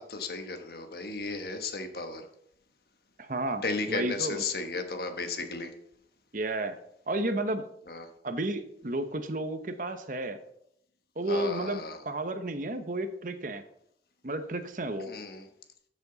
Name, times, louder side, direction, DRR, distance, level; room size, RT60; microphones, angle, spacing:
voice 1, 0.0-2.2 3.6-5.7 7.9-8.1 11.3-12.0 15.1-15.4, left 3 dB, 55° left, 6 dB, 1.3 m, -34 dB
voice 2, 3.2-4.4 6.3-6.8 7.1-7.6 8.2-10.4 11.2-13.6 14.2-15.1, right 1 dB, 45° right, 8 dB, 0.9 m, -32 dB
13.5 x 7.2 x 4.0 m, 0.72 s
head